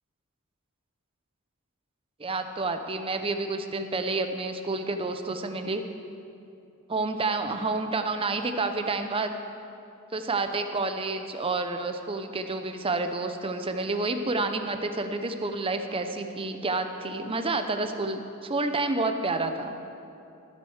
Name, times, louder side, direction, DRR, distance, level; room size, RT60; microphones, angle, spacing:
voice 1, 2.2-5.8 6.9-9.3 10.1-19.7, right 3 dB, 25° right, 7 dB, 0.7 m, -29 dB
13.5 x 7.9 x 6.5 m, 2.7 s
head